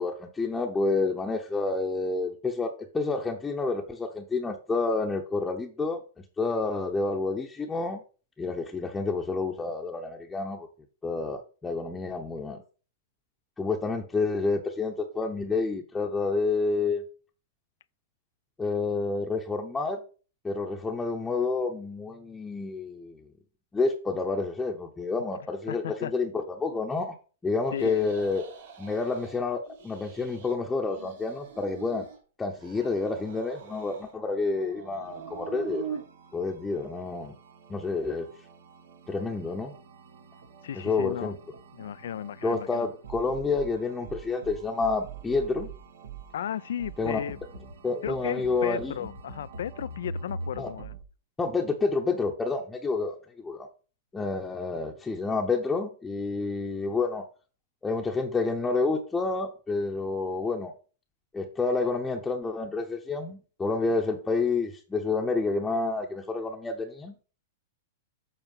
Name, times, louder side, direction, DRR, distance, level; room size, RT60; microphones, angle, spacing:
voice 1, 0.0-8.0 8.4-10.7 11.0-12.6 13.6-17.0 18.6-20.0 20.4-23.3 23.7-27.2 27.4-28.4 28.8-32.1 32.4-35.8 36.3-37.3 37.7-38.3 39.1-39.7 40.8-41.3 42.4-45.7 47.0-47.2 47.8-48.9 50.6-50.7 51.4-53.7 54.1-57.2 57.8-60.7 61.3-67.2, left 3 dB, 10° left, 0.9 m, -29 dB
voice 2, 25.7-26.1 27.7-28.1 40.6-41.4 41.8-42.9 46.3-47.4 48.0-50.9, left 10 dB, 75° left, 0.4 m, -35 dB
sound 1, 27.7-29.4 29.7-30.5 30.8-32.2 32.5-34.1 34.5-36.0, right 7 dB, 60° right, 4.2 m, -43 dB
sound 2, 35.0-51.0, right 3 dB, 80° right, 1.5 m, -45 dB
8.1 x 4.3 x 5.5 m
hypercardioid pair, 130°, 0 cm